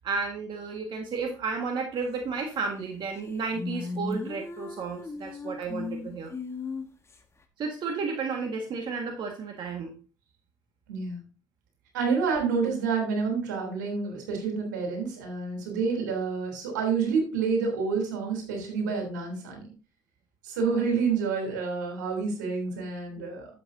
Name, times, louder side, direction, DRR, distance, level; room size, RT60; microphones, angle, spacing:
voice 1, 0.0-6.3 7.6-10.0 23.2-23.3, right 4 dB, 55° right, 2 dB, 1.7 m, -32 dB
sound 1, 2.8-2.9 3.2-7.2, left 3 dB, 30° left, 1.6 m, -36 dB
voice 2, 10.9-11.2 11.9-19.6 20.4-23.5, right 5 dB, 85° right, 2 dB, 3.3 m, -28 dB
11.5 x 7.8 x 2.7 m, 0.36 s
hypercardioid pair, 55°, 10 cm